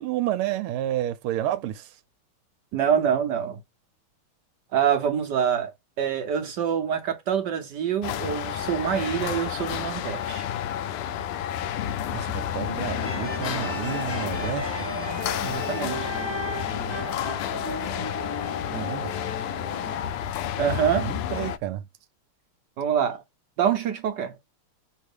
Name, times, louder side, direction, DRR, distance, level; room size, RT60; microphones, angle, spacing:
voice 1, 0.0-1.9 12.1-14.9 18.7-19.1 21.0-21.8, right 12 dB, 90° right, 1.5 m, -30 dB
voice 2, 2.7-3.6 4.7-5.7 6.0-10.5 15.4-16.1 20.6-21.1 22.8-23.2 23.6-24.4, right 8 dB, 65° right, 1.1 m, -25 dB
sound 1, 8.0-21.6, left 10 dB, 90° left, 1.5 m, -31 dB
sound 2, 13.0-20.0, left 1 dB, 30° left, 0.4 m, -35 dB
6.0 x 2.7 x 3.3 m
omnidirectional pair, 2.4 m